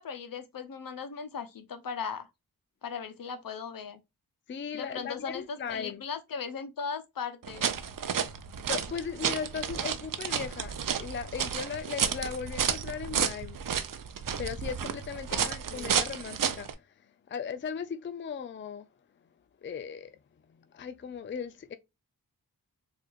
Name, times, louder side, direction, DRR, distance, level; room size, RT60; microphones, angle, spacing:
voice 1, 0.0-2.3 2.8-4.0 4.7-7.7 15.3-16.0, left 6 dB, 65° left, 0.7 m, -38 dB
voice 2, 4.5-6.0 8.6-13.6 14.4-16.7 17.3-18.9 19.6-20.2 20.7-21.8, left 6 dB, 35° left, 0.4 m, -37 dB
sound 1, 7.4-16.7, right 7 dB, 60° right, 0.6 m, -32 dB
4.2 x 2.5 x 2.3 m
cardioid pair, 45°, 37 cm